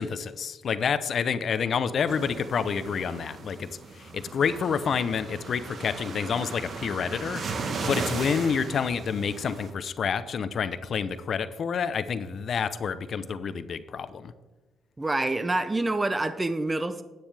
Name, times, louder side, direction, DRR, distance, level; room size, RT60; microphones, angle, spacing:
voice 1, 0.0-3.7 3.9-14.3, left 6 dB, 55° left, 13 dB, 0.6 m, -28 dB
sound 1, 2.1-9.7, right 4 dB, 55° right, 1.2 m, -36 dB
voice 2, 15.0-17.0, right 2 dB, 20° right, 11 dB, 0.6 m, -27 dB
10.5 x 9.2 x 3.4 m, 1.2 s
cardioid pair, 90°, 0 cm